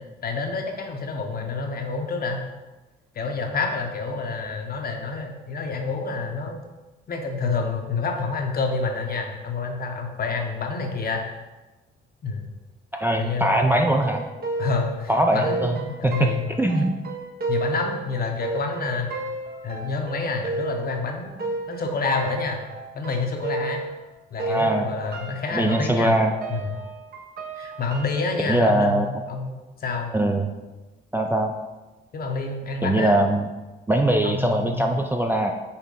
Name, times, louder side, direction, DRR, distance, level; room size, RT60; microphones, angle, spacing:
voice 1, 0.2-2.5 3.1-6.6 7.1-11.2 12.2-12.4 13.2-13.9 14.6-16.5 17.5-19.1 19.6-22.6 22.9-23.8 24.3-26.2 26.5-26.7 27.6-29.5 29.8-30.1 32.1-33.1 34.2-35.0, left 4 dB, 45° left, 3 dB, 0.8 m, -28 dB
voice 2, 12.9-14.2 15.1-15.8 16.0-16.3 16.6-17.0 24.4-24.9 25.5-26.3 28.5-29.1 30.1-30.5 31.1-31.5 32.8-33.5 33.9-35.5, right 1 dB, 10° right, 2 dB, 0.4 m, -21 dB
sound 1, 14.0-24.1 24.4-28.2, right 3 dB, 50° right, 0.8 m, -32 dB
5.4 x 2.1 x 3.9 m, 1.1 s
supercardioid pair, 60°, 21 cm